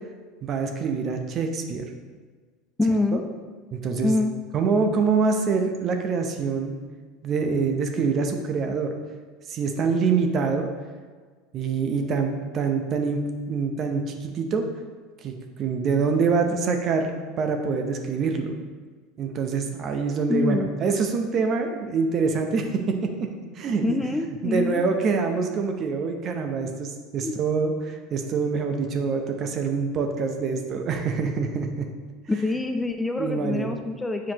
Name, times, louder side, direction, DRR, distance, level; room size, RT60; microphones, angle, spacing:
voice 1, 0.4-1.8 3.1-3.2 3.7-4.1 4.5-6.7 7.2-8.9 9.5-10.7 11.5-14.7 15.2-18.5 19.2-23.2 23.6-24.0 24.4-31.9 33.2-33.8, right 5 dB, 40° right, 5 dB, 0.7 m, -25 dB
voice 2, 2.8-3.2 4.0-4.3 20.3-20.7 23.8-24.8 27.2-27.3 32.3-34.3, left 3 dB, 10° left, 5 dB, 0.4 m, -25 dB
7.3 x 4.7 x 2.9 m, 1.5 s
supercardioid pair, 105°, 0 cm